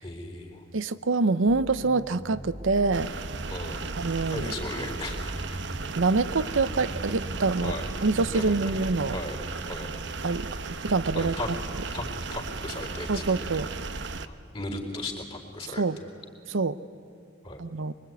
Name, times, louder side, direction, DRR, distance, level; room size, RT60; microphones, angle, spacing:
voice 1, 0.0-0.6 3.5-5.6 7.6-7.9 8.3-10.0 11.1-11.5 11.9-12.1 12.3-13.4 14.2-15.8 17.4-17.6, left 2 dB, 30° left, 3 dB, 3.9 m, -37 dB
voice 2, 0.7-3.1 4.0-4.5 6.0-7.7 8.0-9.2 10.2-11.3 13.1-13.7 15.8-16.0 16.5-16.8 17.6-17.9, right 3 dB, 85° right, 14 dB, 0.8 m, -25 dB
sound 1, 1.5-9.2, right 1 dB, 45° right, 1.8 m, -41 dB
sound 2, 2.9-14.3, right 3 dB, 65° right, 1.0 m, -35 dB
24.5 x 23.0 x 9.5 m, 2.6 s
head